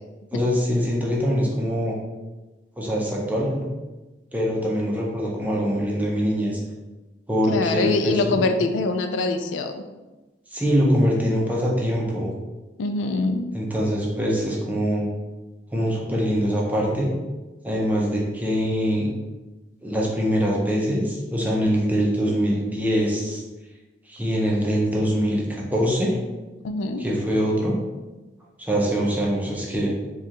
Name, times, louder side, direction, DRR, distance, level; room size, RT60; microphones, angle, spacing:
voice 1, 0.3-2.0 2.8-3.7 4.3-6.6 7.3-8.4 10.5-12.3 13.5-15.1 15.7-17.1 17.6-19.1 19.8-23.4 24.1-26.2 27.0-27.7 28.6-29.9, equal, 10° right, -3 dB, 0.6 m, -23 dB
voice 2, 7.5-9.8 12.8-13.5 26.6-27.0, left 3 dB, 85° left, 7 dB, 0.4 m, -24 dB
4.7 x 2.4 x 2.9 m, 1.1 s
head